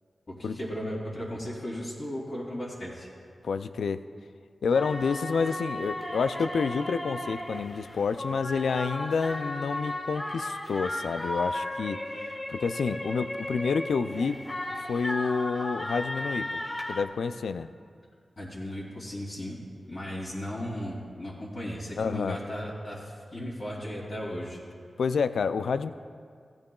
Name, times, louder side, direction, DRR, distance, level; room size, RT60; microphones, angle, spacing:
voice 1, 0.4-3.1 18.4-19.6 19.9-24.6, equal, 55° left, -9 dB, 2.7 m, -36 dB
voice 2, 3.4-4.0 4.6-14.4 14.9-16.6 16.9-17.7 22.0-22.4 25.0-25.9, left 5 dB, 85° left, 11 dB, 0.3 m, -29 dB
sound 1, 4.7-17.0, left 1 dB, 30° left, 1.2 m, -35 dB
16.0 x 13.0 x 2.3 m, 2.2 s
cardioid pair, 40°, 0 cm